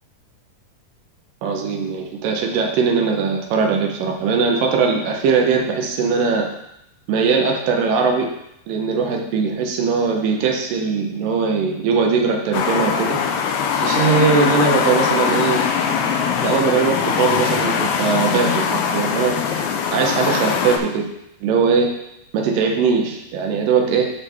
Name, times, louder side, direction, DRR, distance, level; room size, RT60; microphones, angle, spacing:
voice 1, 1.4-6.5 7.1-8.3 8.7-13.2 13.8-15.6 16.4-19.6 19.9-21.1 21.4-21.9 22.3-24.1, right 5 dB, 80° right, 2 dB, 2.5 m, -20 dB
sound 1, 12.5-20.8, left 6 dB, 80° left, 1.8 m, -21 dB
10.5 x 4.5 x 3.4 m, 0.83 s
omnidirectional pair, 3.9 m